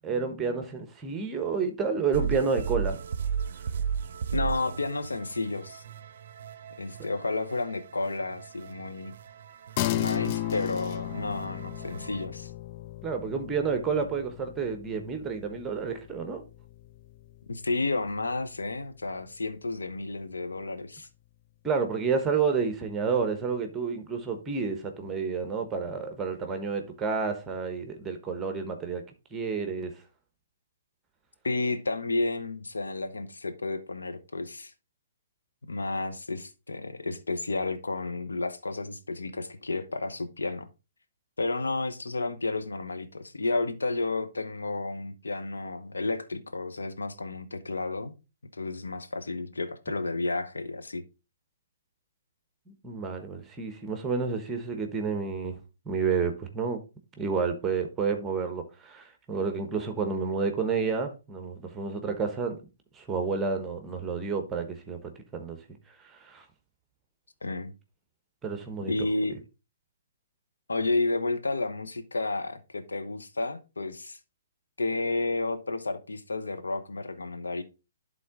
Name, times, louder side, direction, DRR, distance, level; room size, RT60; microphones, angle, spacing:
voice 1, 0.0-3.0 13.0-16.4 21.6-29.0 29.3-29.9 52.8-55.6 55.9-56.8 57.2-62.6 63.0-65.0 65.3-65.6 66.0-66.4 68.4-68.9, right 5 dB, 15° right, 1.1 m, -30 dB
sound 1, 2.1-12.3, right 7 dB, 55° right, 0.6 m, -36 dB
voice 2, 4.3-5.8 6.8-9.1 9.9-12.5 17.5-21.1 31.4-34.7 35.7-40.7 41.4-48.1 48.5-51.0 67.4-67.7 68.9-69.4 70.7-74.2 74.8-77.6, left 3 dB, 85° left, 1.1 m, -31 dB
sound 2, 9.8-19.5, left 14 dB, 35° left, 0.3 m, -36 dB
11.5 x 3.8 x 3.7 m
hypercardioid pair, 135°, 0 cm